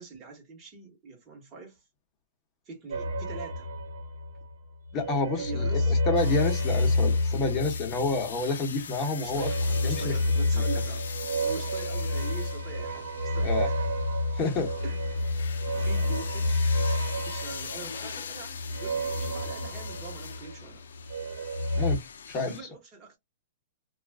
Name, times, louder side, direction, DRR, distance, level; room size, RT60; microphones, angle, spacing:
voice 1, 0.0-1.8 2.6-3.7 5.4-6.0 9.1-13.8 14.8-16.7 17.2-20.8 22.4-23.2, right 4 dB, 20° right, 1.3 m, -44 dB
sound 1, 2.9-4.5 4.9-8.4 9.2-20.6 20.9-22.0, left 1 dB, 70° right, 0.8 m, -29 dB
voice 2, 4.9-9.5 9.8-10.2 13.4-13.7 14.4-14.7 21.7-22.5, left 3 dB, 25° left, 1.0 m, -29 dB
sound 2, 6.2-22.6, left 7 dB, 90° left, 0.5 m, -42 dB
2.4 x 2.2 x 3.4 m
hypercardioid pair, 155°, 0 cm